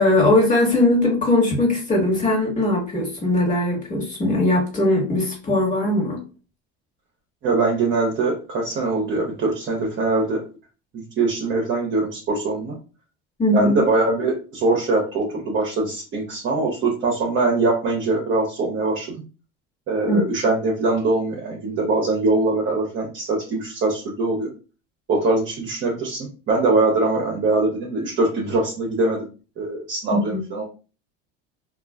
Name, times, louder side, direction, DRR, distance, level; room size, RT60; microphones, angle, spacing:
voice 1, 0.0-6.2 13.4-13.8 20.1-20.2 30.1-30.4, left 1 dB, 25° left, -1 dB, 1.3 m, -20 dB
voice 2, 7.4-10.4 10.9-12.7 13.5-19.1 19.9-24.5 25.1-29.2 29.6-30.6, right 3 dB, 40° right, -2 dB, 0.8 m, -22 dB
2.3 x 2.3 x 2.2 m, 0.34 s
supercardioid pair, 95°, 30 cm